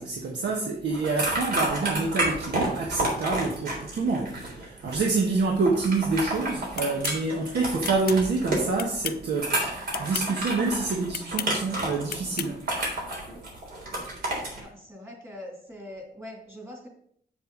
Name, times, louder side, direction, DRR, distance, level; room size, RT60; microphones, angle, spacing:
voice 1, 0.0-12.6, right 3 dB, 85° right, 0 dB, 1.3 m, -27 dB
sound 1, 0.9-14.6, right 1 dB, 65° right, 3.6 m, -31 dB
sound 2, 6.8-7.2 7.8-8.2 8.8-9.3 9.9-10.3 11.1-11.5 12.1-12.5, left 10 dB, 65° left, 0.5 m, -34 dB
voice 2, 14.6-16.9, left 1 dB, 15° right, -1 dB, 2.4 m, -42 dB
7.9 x 7.6 x 3.8 m, 0.64 s
wide cardioid pair, 175°, 17 cm